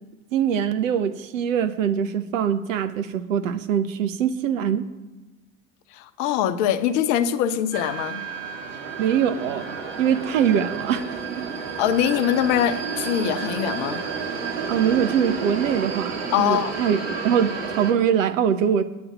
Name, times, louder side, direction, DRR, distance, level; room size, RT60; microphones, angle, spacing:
voice 1, 0.3-4.9 9.0-11.5 14.7-18.8, right 8 dB, 70° right, 0.9 m, -23 dB
voice 2, 5.9-8.2 11.8-14.0 16.3-16.8, left 10 dB, 60° left, 0.9 m, -23 dB
sound 1, 7.7-17.9, right 5 dB, 55° right, 2.6 m, -31 dB
9.5 x 7.1 x 8.6 m
figure-of-eight pair, 65°, 41 cm